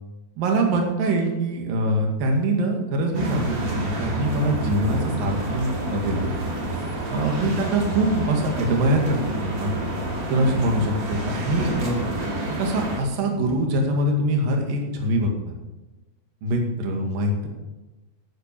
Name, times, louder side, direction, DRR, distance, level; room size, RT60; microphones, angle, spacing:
voice 1, 0.4-6.3 7.1-9.8 10.3-12.0 12.6-15.3 16.4-17.5, right 1 dB, 55° right, 2 dB, 3.5 m, -23 dB
sound 1, 3.1-13.0, right 1 dB, 35° right, 2.4 m, -28 dB
13.5 x 8.7 x 6.9 m, 1.1 s
omnidirectional pair, 5.1 m